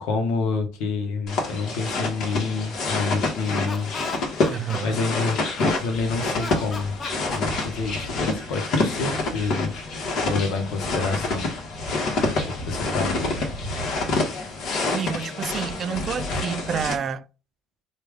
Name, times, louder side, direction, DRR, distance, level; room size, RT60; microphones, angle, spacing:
voice 1, 0.0-3.9 4.3-7.0 7.2-11.5 12.0-13.4, left 4 dB, 90° left, 0.9 m, -28 dB
sound 1, 1.3-17.0, left 2 dB, 65° left, 1.2 m, -27 dB
Laughter, 3.4-5.9 6.3-8.4, left 4 dB, 35° left, 0.7 m, -37 dB
voice 2, 4.5-5.0 14.9-17.3, right 7 dB, 50° right, 0.3 m, -29 dB
3.2 x 2.3 x 3.4 m
cardioid pair, 110°, 0 cm